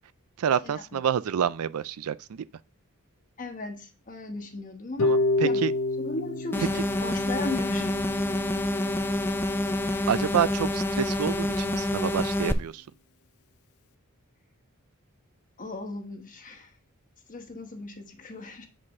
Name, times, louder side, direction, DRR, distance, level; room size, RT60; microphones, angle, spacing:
voice 1, 0.4-2.5 5.0-5.7 6.7-6.8 10.1-12.8, right 8 dB, 80° right, 0.4 m, -28 dB
voice 2, 3.4-5.6 6.0-8.0 9.8-10.1 15.6-16.7 17.3-18.7, left 2 dB, 40° left, 1.2 m, -37 dB
Harp, 5.0-11.0, left 2 dB, 85° left, 0.6 m, -30 dB
sound 1, 6.5-12.5, left 1 dB, 10° left, 0.4 m, -27 dB
8.3 x 5.1 x 3.6 m
head